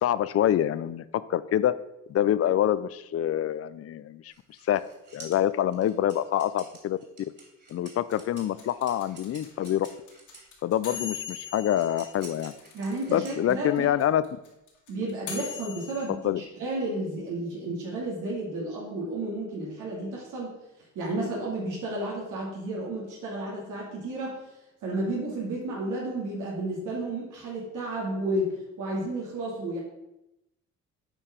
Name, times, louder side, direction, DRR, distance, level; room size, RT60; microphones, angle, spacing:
voice 1, 0.0-1.8 2.1-4.3 4.7-4.8 5.1-7.0 7.7-9.9 10.6-12.5 13.1-14.2 16.2-16.4, left 11 dB, 50° left, 16 dB, 0.5 m, -26 dB
sound 1, 4.3-10.5 11.3-13.9, right 3 dB, 35° right, 2.9 m, -50 dB
sound 2, 8.1-13.2 13.5-13.6 13.8-16.1, left 8 dB, 75° left, 2.6 m, -39 dB
voice 2, 12.7-13.9 14.9-20.6 21.0-24.4 24.8-28.5 28.8-29.8, right 1 dB, 85° right, -3 dB, 2.3 m, -32 dB
8.8 x 4.7 x 5.1 m, 0.91 s
cardioid pair, 90°, 30 cm